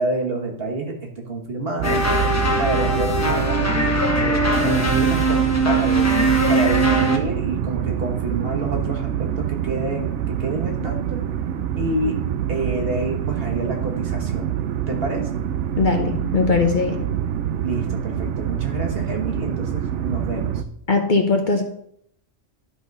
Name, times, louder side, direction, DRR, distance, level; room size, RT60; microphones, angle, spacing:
voice 1, 0.0-2.0 2.6-6.1 6.5-11.2 11.8-12.2 12.5-14.5 14.9-15.4 17.6-20.5, right 2 dB, 55° right, 1 dB, 1.7 m, -28 dB
sound 1, 1.8-7.2, right 1 dB, 15° left, 0.9 m, -20 dB
sound 2, 1.8-20.6, right 10 dB, 75° right, 0.9 m, -26 dB
voice 2, 15.8-17.0 20.9-21.6, left 4 dB, 45° left, 5 dB, 0.9 m, -20 dB
11.5 x 4.0 x 5.3 m, 0.70 s
omnidirectional pair, 1.2 m